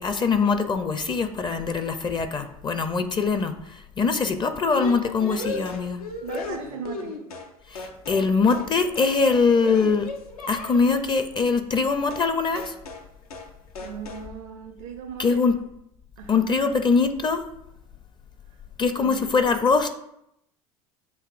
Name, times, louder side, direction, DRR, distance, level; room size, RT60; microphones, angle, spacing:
voice 1, 0.0-3.5 4.0-6.0 7.7-10.1 10.5-12.7 15.2-15.5 16.3-17.4 18.8-19.9, left 4 dB, 25° left, 8 dB, 0.5 m, -22 dB
sound 1, 4.8-7.5 7.8-8.3 8.5-8.7 9.0-11.0 12.1-12.3 12.6-13.1 13.3-13.5 13.8-14.3, left 3 dB, 85° left, 0.6 m, -35 dB
voice 2, 6.2-7.3 13.8-15.6 16.2-16.4 18.8-19.3, right 7 dB, 70° right, 4 dB, 0.6 m, -38 dB
7.9 x 2.6 x 2.5 m, 0.79 s
hypercardioid pair, 70°, 18 cm